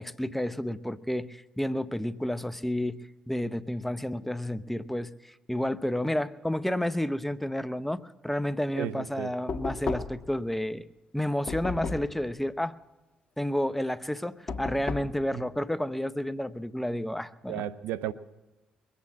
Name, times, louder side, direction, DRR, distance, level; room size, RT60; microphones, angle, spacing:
voice 1, 0.0-3.0 3.3-10.8 11.1-12.7 13.4-17.6, left 1 dB, 5° left, 0.8 m, -31 dB
voice 2, 8.8-9.3 15.3-15.4 17.5-18.1, right 12 dB, 85° right, 0.6 m, -33 dB
Knock, 9.5-10.3 11.5-12.2 14.5-15.2, left 4 dB, 50° left, 1.3 m, -34 dB
22.0 x 8.5 x 7.3 m
supercardioid pair, 55°, 3 cm